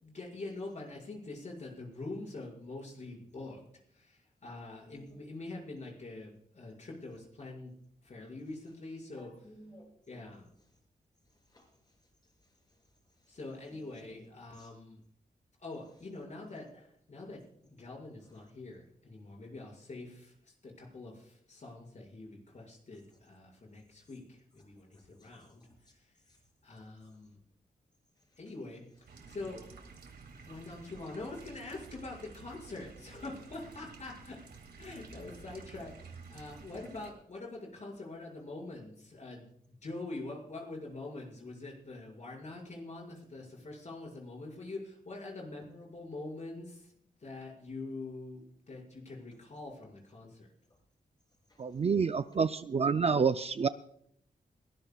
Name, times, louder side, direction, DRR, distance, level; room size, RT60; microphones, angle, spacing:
voice 1, 0.0-3.6 3.9-7.7 8.0-9.3 10.1-10.5 13.3-15.0 15.6-25.6 25.9-26.1 26.6-27.4 28.4-29.7 30.5-34.4 34.8-46.9 47.2-50.5, left 2 dB, 45° left, -2 dB, 5.8 m, -45 dB
voice 2, 4.8-5.2 9.1-9.9 10.1-10.5 11.5-12.0 12.4-12.5 13.2-13.3 13.7-14.2 14.6-14.7 18.3-18.4 24.9-25.3 25.6-25.7 26.3-26.4 51.5-51.6, left 1 dB, 25° left, 0 dB, 6.9 m, -58 dB
sound 1, 29.1-37.1, right 4 dB, 90° right, 2.2 m, -52 dB
voice 3, 51.6-53.7, right 5 dB, 40° right, 10 dB, 0.4 m, -28 dB
22.5 x 18.0 x 2.4 m, 0.68 s
wide cardioid pair, 140°, 16 cm